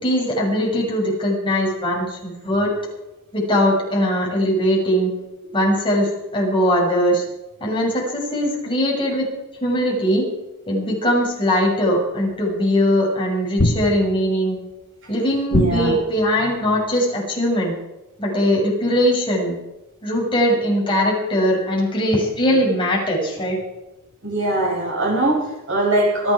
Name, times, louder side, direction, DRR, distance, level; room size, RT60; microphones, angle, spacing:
voice 1, 0.0-2.7 3.3-5.1 5.5-7.2 7.6-9.3 9.6-10.2 10.7-14.6 15.1-17.7 18.2-19.6 20.0-23.6, equal, 20° left, -3 dB, 6.2 m, -20 dB
sound 1, 12.3-12.4 13.6-14.4 15.5-16.3, left 1 dB, 50° left, 1.2 m, -22 dB
voice 2, 15.5-15.9 24.2-26.3, right 1 dB, 60° right, -2 dB, 7.0 m, -21 dB
26.5 x 9.7 x 4.8 m, 0.98 s
head